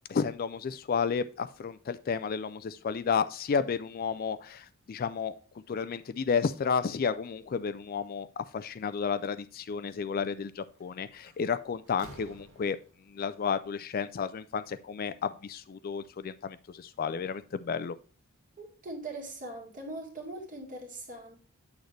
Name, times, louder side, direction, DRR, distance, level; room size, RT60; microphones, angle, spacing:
voice 1, 0.1-5.3 5.7-12.8 13.1-18.0, left 6 dB, 45° left, 0.4 m, -32 dB
Slam, 10.6-10.8 11.3-13.1, right 1 dB, 75° right, 1.8 m, -51 dB
voice 2, 18.6-21.3, right 2 dB, 40° right, 1.9 m, -41 dB
8.1 x 6.4 x 3.2 m
head